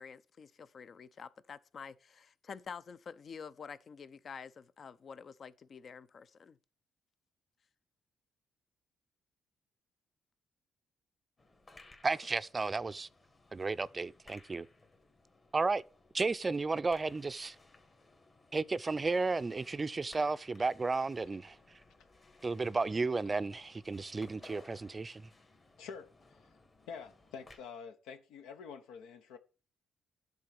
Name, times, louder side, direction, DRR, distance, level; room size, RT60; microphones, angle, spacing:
voice 1, 0.0-6.6, left 6 dB, 50° left, 0.6 m, -48 dB
sound 1, 11.4-27.6, left 2 dB, 35° left, 1.7 m, -60 dB
voice 2, 12.0-13.1 13.5-14.7 15.5-15.8 16.1-17.6 18.5-21.6 22.4-25.3, right 3 dB, 25° right, 0.4 m, -33 dB
voice 3, 25.8-26.6 26.9-29.4, left 6 dB, 90° left, 0.9 m, -48 dB
10.5 x 3.9 x 6.6 m
cardioid pair, 85°, 0 cm